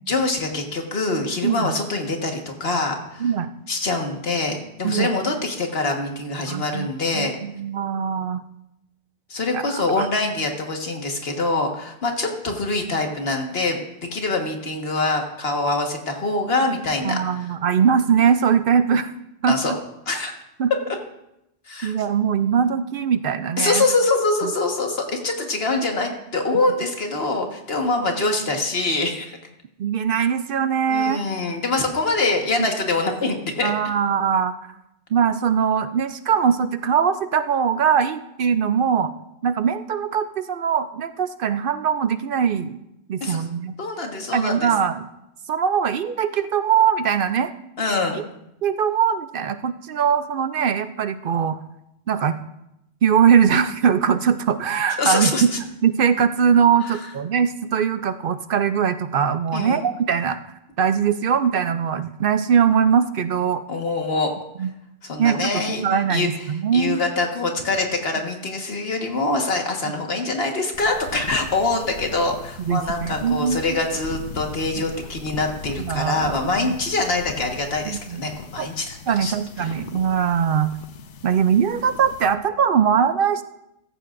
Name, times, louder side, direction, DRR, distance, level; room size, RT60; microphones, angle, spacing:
voice 1, 0.1-3.3 3.7-7.4 9.3-13.8 14.1-17.2 19.5-19.7 20.1-20.3 21.7-21.9 23.6-29.3 30.9-33.7 43.2-43.4 43.8-44.7 47.8-48.2 55.0-55.4 59.5-59.9 63.7-64.3 65.0-65.8 66.1-66.3 66.7-79.7, left 3 dB, 60° left, 3 dB, 1.7 m, -24 dB
voice 2, 1.4-1.7 3.2-3.5 4.8-5.1 6.5-6.9 7.1-8.4 9.5-9.6 10.0-10.1 17.0-19.1 19.4-19.8 20.6-20.7 21.8-23.8 29.8-31.2 32.6-32.7 33.6-34.5 35.1-39.1 39.4-42.8 43.1-43.7 44.3-45.1 45.5-47.5 48.6-51.6 52.1-52.4 53.0-55.3 55.8-60.4 60.8-63.6 64.6-64.7 65.2-65.5 65.8-67.0 72.6-73.8 74.8-74.9 75.8-76.7 77.9-78.3 78.6-78.7 79.1-80.7 81.2-83.4, right 7 dB, 60° right, 11 dB, 0.6 m, -21 dB
sound 1, 70.7-82.4, left 6 dB, 80° left, 1.1 m, -38 dB
15.5 x 14.0 x 2.5 m, 0.85 s
omnidirectional pair, 1.2 m